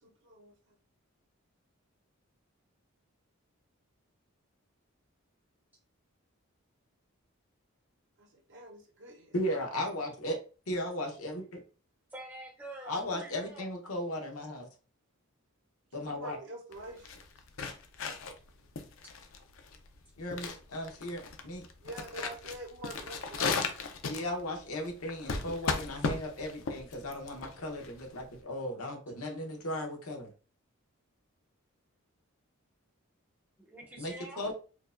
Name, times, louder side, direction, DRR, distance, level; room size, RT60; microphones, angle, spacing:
voice 1, 0.0-0.5 8.2-9.3 16.0-17.1 21.8-23.7, right 1 dB, 55° right, 1 dB, 0.6 m, -45 dB
voice 2, 9.3-10.4 10.7-11.6 12.9-14.7 15.9-16.4 20.2-21.6 24.1-30.3 34.0-34.5, left 1 dB, 85° left, 2 dB, 0.9 m, -36 dB
voice 3, 12.1-13.7 33.6-34.5, right 1 dB, 10° right, -2 dB, 0.5 m, -46 dB
sound 1, 16.7-28.4, left 4 dB, 70° left, 0.5 m, -36 dB
4.5 x 2.2 x 2.5 m, 0.36 s
head